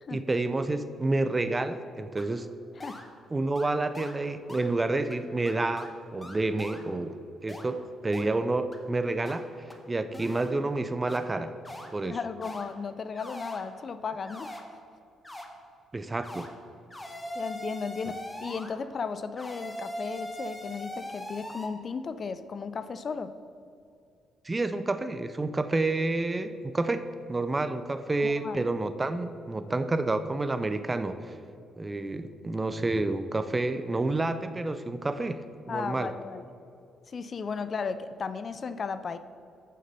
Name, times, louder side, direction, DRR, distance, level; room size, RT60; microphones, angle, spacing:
voice 1, 0.1-2.5 3.3-9.5 9.9-11.5 11.9-12.2 15.9-16.5 24.4-27.0 27.3-31.4 31.8-36.1, right 2 dB, 20° right, 11 dB, 0.5 m, -29 dB
sound 1, 2.2-2.3 2.8-3.1 3.6-3.7 3.9-4.1 4.5-4.7 5.1-5.2 5.5-5.9 6.2-6.8 7.5-7.6 8.1-8.3 8.7-8.8 9.3-9.4 9.7-9.8 10.1-10.5 11.1-11.2 11.6-11.9 12.4-12.6 13.2-13.6 14.3-14.6 15.2-15.5 16.2-16.5 16.9-18.7 19.4-21.7, equal, 15° left, 1.0 m, -40 dB
voice 2, 12.0-14.6 17.3-23.3 28.2-28.7 35.7-36.5 37.1-39.2, left 5 dB, 45° left, 12 dB, 0.4 m, -35 dB
6.6 x 6.6 x 5.4 m, 2.5 s
cardioid pair, 90°, 0 cm